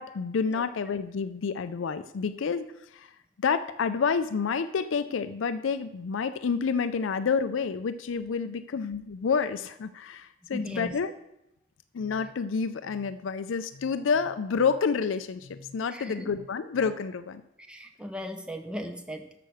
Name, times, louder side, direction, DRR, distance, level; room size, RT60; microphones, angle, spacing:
voice 1, 0.0-3.1 3.4-11.1 11.9-17.4, left 5 dB, 85° left, 11 dB, 0.4 m, -29 dB
voice 2, 10.5-10.9 15.9-16.3 17.7-19.3, equal, 5° right, 5 dB, 0.8 m, -37 dB
6.8 x 6.4 x 6.3 m, 0.85 s
head